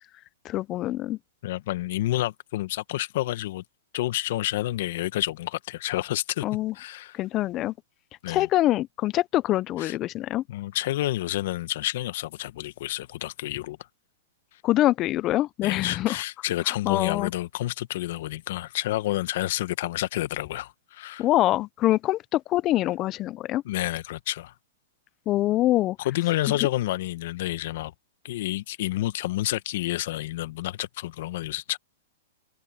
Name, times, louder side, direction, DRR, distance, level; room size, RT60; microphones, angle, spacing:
voice 1, 0.4-1.2 6.4-6.7 7.1-7.7 8.3-10.4 14.6-16.2 16.7-17.3 21.2-23.6 25.3-26.0, left 15 dB, 30° left, 0.5 m, -24 dB
voice 2, 1.4-3.6 3.9-6.5 6.7-7.1 8.2-8.5 9.8-9.9 10.5-13.8 15.6-21.2 23.6-24.5 26.0-27.9 28.2-31.8, left 15 dB, 60° left, 1.2 m, -29 dB
hypercardioid pair, 135°, 0 cm